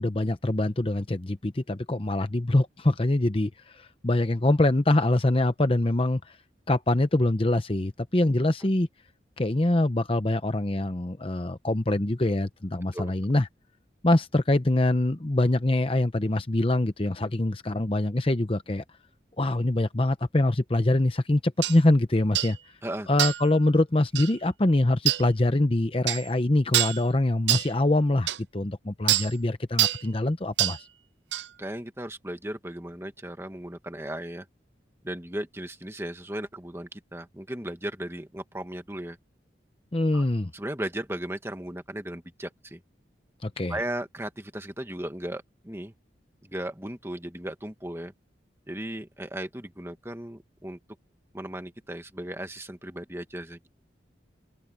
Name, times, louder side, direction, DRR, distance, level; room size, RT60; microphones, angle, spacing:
voice 1, 0.0-6.4 6.7-8.9 9.4-13.5 14.0-18.8 19.4-22.6 23.1-30.8 39.9-40.5 43.4-43.8, left 1 dB, 30° left, 0.8 m, -24 dB
sound 1, 21.6-21.8 22.4-22.6 23.2-23.5 24.2-24.3 25.1-25.2 26.1-26.3 26.7-27.0 27.5-27.7 28.3-28.4 29.1-29.3 29.8-30.0 30.6-30.8 31.3-31.5, right 14 dB, 80° right, 0.6 m, -25 dB
voice 2, 31.6-34.5 35.0-39.2 40.1-40.2 40.5-42.8 43.7-45.9 46.4-48.1 48.7-50.8 51.3-53.7, right 1 dB, 15° right, 1.7 m, -36 dB
open air
head